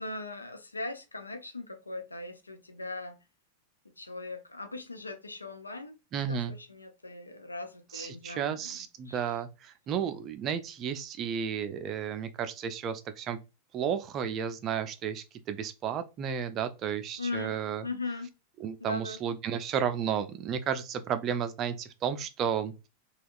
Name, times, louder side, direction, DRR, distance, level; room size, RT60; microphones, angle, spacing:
voice 1, 0.0-3.2 4.0-8.8 9.1-9.3 17.2-18.3 18.8-19.2, left 3 dB, 80° left, 0.5 m, -39 dB
voice 2, 6.1-6.5 7.9-13.4 13.7-17.8 18.6-22.9, right 8 dB, 30° right, 0.4 m, -33 dB
3.4 x 2.3 x 2.2 m
figure-of-eight pair, 90°, 0 cm